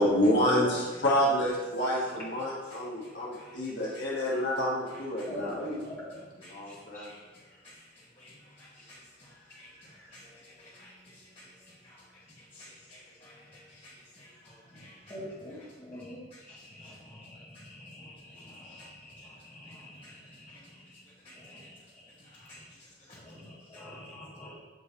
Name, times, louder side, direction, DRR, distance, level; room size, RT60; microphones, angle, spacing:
voice 1, 0.0-5.6 6.5-7.1, equal, 65° left, -5 dB, 1.3 m, -28 dB
voice 2, 2.7-4.0 5.2-5.3 6.4-12.0 12.3-15.1 15.9-16.0 16.3-16.7 18.7-18.8 19.7-19.8 20.3-20.7 21.2-21.7 22.2-23.2, left 1 dB, 30° left, -10 dB, 1.2 m, -55 dB
voice 3, 5.3-6.1 6.7-7.1 14.7-14.8 15.1-20.6 20.8-21.0 21.3-22.1 22.4-22.6 23.1-24.5, left 1 dB, 10° left, -10 dB, 2.0 m, -44 dB
7.4 x 4.7 x 2.8 m, 1.2 s
head